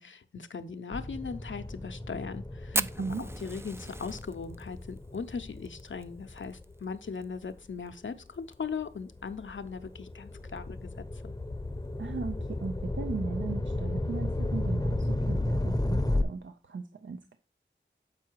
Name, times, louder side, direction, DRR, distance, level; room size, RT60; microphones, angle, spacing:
voice 1, 0.0-11.3, left 5 dB, 75° left, 0.7 m, -39 dB
sound 1, 0.9-7.7 8.2-16.2, left 1 dB, 20° left, 0.7 m, -34 dB
Fire, 2.7-7.2 7.5-7.6 7.9-8.0 8.3-8.8 9.3-9.4 10.4-10.6, right 2 dB, 10° right, 0.4 m, -36 dB
voice 2, 2.7-3.3 12.0-17.4, right 4 dB, 70° right, 0.5 m, -37 dB
7.5 x 4.8 x 4.5 m
wide cardioid pair, 65°, 20 cm